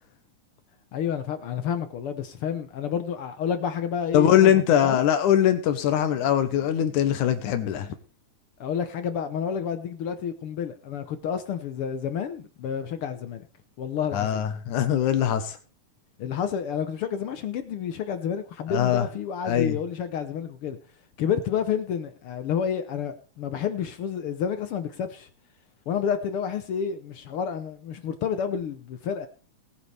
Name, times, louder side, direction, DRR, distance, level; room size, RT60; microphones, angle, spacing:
voice 1, 0.9-4.5 4.8-5.0 8.6-13.4 13.8-14.4 16.2-20.8 21.2-25.3 25.9-29.3, left 7 dB, 65° left, 1.4 m, -30 dB
voice 2, 4.1-7.9 14.1-15.6 18.7-19.1 19.5-19.8, left 10 dB, 85° left, 2.5 m, -22 dB
19.5 x 9.5 x 3.4 m
omnidirectional pair, 3.4 m